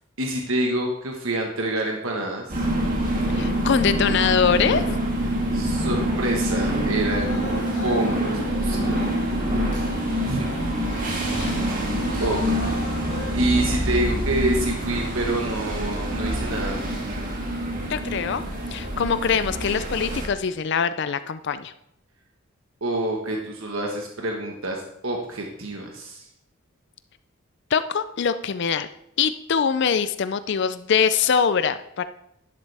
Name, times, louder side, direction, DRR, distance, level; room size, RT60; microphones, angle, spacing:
voice 1, 0.2-2.6 5.5-7.3 7.8-9.1 10.2-10.5 12.2-12.4 13.3-16.8 22.8-26.3, right 1 dB, 80° right, 1 dB, 1.4 m, -27 dB
sound 1, 2.5-20.3, right 1 dB, 40° right, 2.5 m, -26 dB
voice 2, 3.3-4.8 11.3-11.6 17.9-18.4 18.7-21.7 27.7-28.9 29.2-32.0, left 6 dB, 55° left, 12 dB, 0.4 m, -23 dB
sound 2, 7.0-13.3, left 1 dB, 80° left, 2.4 m, -38 dB
11.5 x 11.0 x 3.4 m, 0.83 s
head